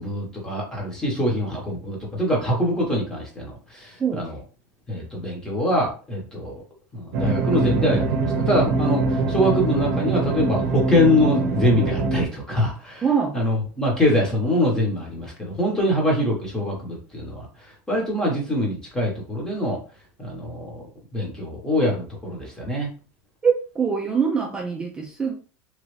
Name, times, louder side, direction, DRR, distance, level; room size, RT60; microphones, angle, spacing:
voice 1, 0.0-4.4 4.9-6.6 6.9-13.0 13.3-17.5 17.9-19.8 20.2-20.8 21.1-22.9, left 1 dB, 10° left, -2 dB, 1.0 m, -24 dB
sound 1, 7.1-12.2, right 3 dB, 80° right, 0.6 m, -23 dB
voice 2, 13.0-13.4 23.4-25.3, right 6 dB, 10° right, 1 dB, 0.4 m, -23 dB
3.0 x 2.5 x 3.1 m, 0.36 s
cardioid pair, 170°, 8 cm